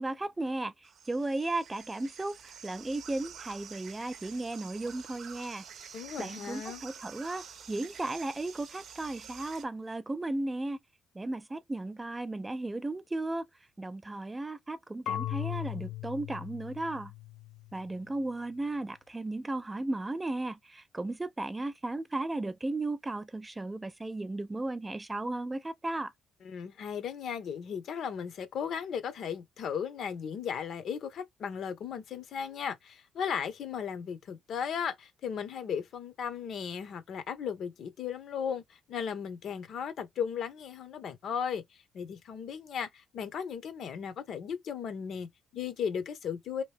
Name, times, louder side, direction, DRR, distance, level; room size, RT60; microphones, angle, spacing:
voice 1, 0.0-5.6 6.2-10.8 11.2-13.4 13.8-17.1 17.7-26.1, right 2 dB, 20° right, 0.4 m, -35 dB
sound 1, 0.8-9.6, right 7 dB, 65° right, 0.6 m, -48 dB
voice 2, 5.9-6.8 26.4-46.6, left 7 dB, 65° left, 0.8 m, -36 dB
Marimba xylophone / Wood, 15.1-17.9, left 13 dB, 90° left, 0.3 m, -38 dB
2.9 x 2.7 x 3.3 m
cardioid pair, 90°, 0 cm